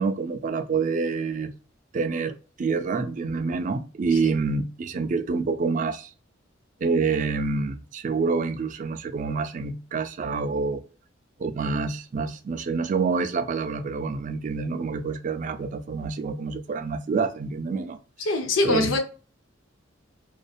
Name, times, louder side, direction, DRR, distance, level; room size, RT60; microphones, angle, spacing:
voice 1, 0.0-1.5 1.9-6.1 6.8-10.8 11.4-18.0 18.6-18.9, right 4 dB, 40° right, 0.3 m, -27 dB
voice 2, 18.3-19.0, left 2 dB, 90° left, 0.6 m, -23 dB
2.5 x 2.2 x 2.2 m
head